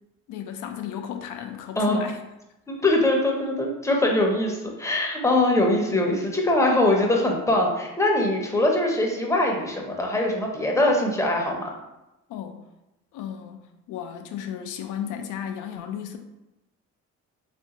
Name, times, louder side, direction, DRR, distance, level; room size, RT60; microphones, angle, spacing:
voice 1, 0.3-2.2 12.3-12.6 13.1-16.2, left 9 dB, 85° left, 6 dB, 0.5 m, -34 dB
voice 2, 2.7-11.7, left 1 dB, 10° left, 0 dB, 0.6 m, -22 dB
3.4 x 2.5 x 2.8 m, 0.96 s
cardioid pair, 90°, 30 cm